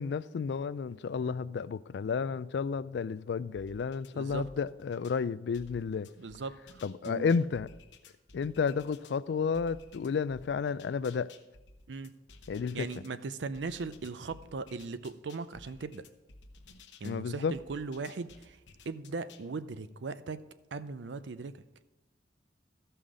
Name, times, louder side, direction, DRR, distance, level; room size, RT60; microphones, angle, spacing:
voice 1, 0.0-6.1 6.8-7.7 8.3-11.3 12.5-12.9 17.0-17.6, left 5 dB, 70° left, 0.3 m, -32 dB
sound 1, 3.5-5.2 5.5-9.2 9.5-13.1 13.5-17.2 17.5-19.5, left 3 dB, 90° left, 0.9 m, -55 dB
voice 2, 4.1-4.5 6.2-7.3 11.9-12.1 12.7-16.0 17.0-18.6 18.9-20.4 20.7-21.6, right 4 dB, 80° right, 0.5 m, -39 dB
14.0 x 5.6 x 5.0 m
head